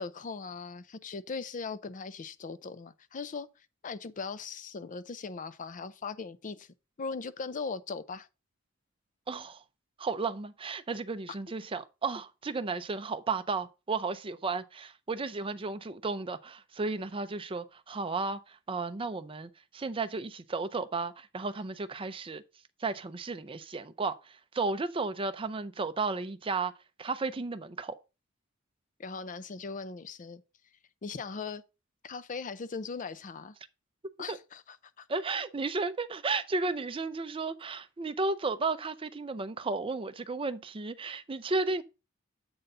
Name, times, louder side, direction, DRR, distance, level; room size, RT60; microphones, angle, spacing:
voice 1, 0.0-3.5 3.8-6.7 7.0-8.3 29.0-30.4 31.0-31.6 32.0-33.5 34.2-34.6 35.0-35.1, left 4 dB, 40° left, 0.5 m, -39 dB
voice 2, 9.3-9.6 10.0-22.4 22.8-26.7 27.0-27.9 34.3-34.4 35.1-41.8, right 3 dB, 25° right, 0.5 m, -33 dB
7.9 x 3.9 x 5.5 m
head